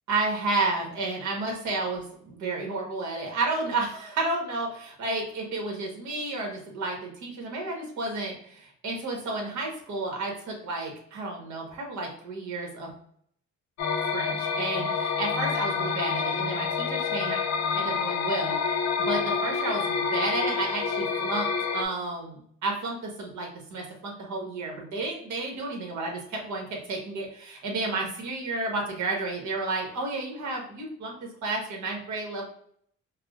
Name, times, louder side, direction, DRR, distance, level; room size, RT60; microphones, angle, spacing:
voice 1, 0.1-12.9 14.1-17.4 17.7-21.5 21.7-32.4, right 3 dB, 70° right, 0 dB, 1.3 m, -31 dB
sound 1, 13.8-21.9, left 5 dB, 65° left, 0.5 m, -28 dB
4.7 x 2.1 x 2.4 m, 0.63 s
cardioid pair, 90°, 30 cm